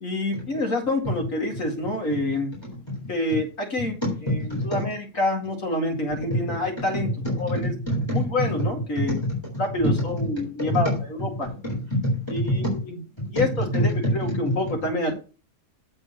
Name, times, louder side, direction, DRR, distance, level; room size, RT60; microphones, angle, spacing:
voice 1, 0.0-2.5 3.1-3.9 4.3-4.4 4.6-7.1 7.4-7.7 8.1-9.1 9.6-11.5 12.3-13.0 13.3-15.1, left 2 dB, 55° left, 2 dB, 2.3 m, -27 dB
voice 2, 4.3-4.8 7.2-7.3 7.6-8.6 9.1-9.3 10.4-10.9 11.4-12.7 13.2-13.3 14.0-14.7, equal, 15° left, -4 dB, 3.4 m, -26 dB
8.0 x 4.4 x 6.2 m, 0.35 s
omnidirectional pair, 1.7 m